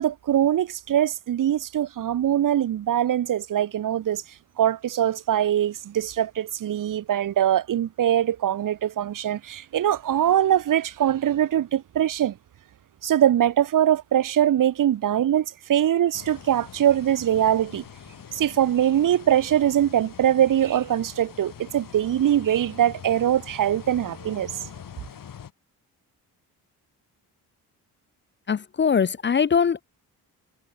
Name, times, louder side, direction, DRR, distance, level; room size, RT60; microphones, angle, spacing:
voice 1, 0.0-4.2 4.6-12.4 13.0-17.8 18.3-24.7, right 11 dB, 55° right, 1.1 m, -22 dB
sound 1, 16.1-25.5, left 8 dB, 60° left, 6.7 m, -44 dB
voice 2, 28.5-29.8, left 6 dB, 30° left, 0.6 m, -21 dB
cardioid pair, 80°, 37 cm